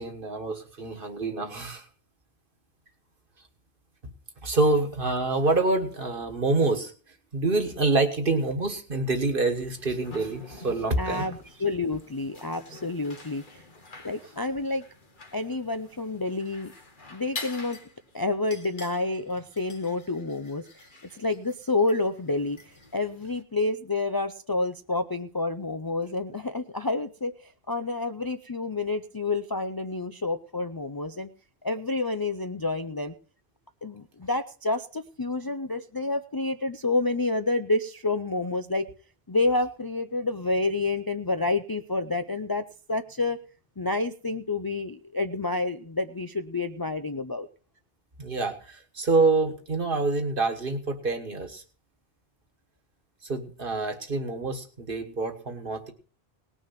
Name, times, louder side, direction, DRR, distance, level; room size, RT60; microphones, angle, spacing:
voice 1, 0.0-1.8 4.4-6.9 7.3-11.3 48.2-51.6 53.3-55.9, right 3 dB, 60° right, 6 dB, 1.7 m, -26 dB
sound 1, 9.5-23.4, left 3 dB, 55° left, 1.5 m, -47 dB
voice 2, 11.0-13.6 14.0-14.8 15.3-16.7 17.1-17.8 18.1-20.6 21.1-22.6 22.9-31.3 31.6-33.1 33.8-38.9 39.3-43.4 43.8-47.5, left 2 dB, 30° left, 8 dB, 0.4 m, -29 dB
19.0 x 6.4 x 5.7 m, 0.40 s
omnidirectional pair, 1.0 m